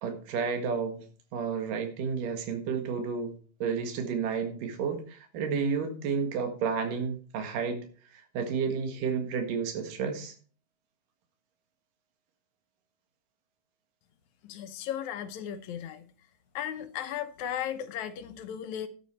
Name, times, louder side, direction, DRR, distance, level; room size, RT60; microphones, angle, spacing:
voice 1, 0.0-1.0 1.3-3.3 3.6-7.8 8.1-10.3, right 6 dB, 75° right, 3.2 m, -31 dB
voice 2, 14.4-16.0 16.6-18.9, left 10 dB, 70° left, 2.0 m, -36 dB
12.0 x 7.8 x 4.3 m
omnidirectional pair, 3.9 m